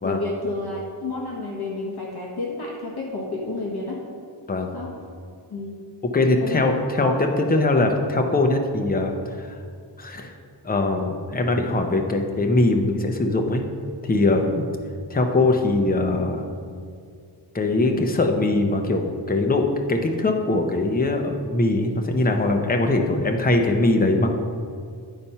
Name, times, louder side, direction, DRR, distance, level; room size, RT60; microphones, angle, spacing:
voice 1, 0.0-4.0 4.7-4.9 5.5-5.8 6.4-6.7 7.0-7.1 7.5-7.6, left 3 dB, 60° left, -2 dB, 1.2 m, -30 dB
voice 2, 6.1-9.6 10.0-10.3 10.6-13.6 14.0-14.7 15.1-16.4 17.5-24.3, left 2 dB, 20° left, 4 dB, 0.7 m, -21 dB
10.5 x 4.2 x 5.5 m, 2.2 s
wide cardioid pair, 165°, 44 cm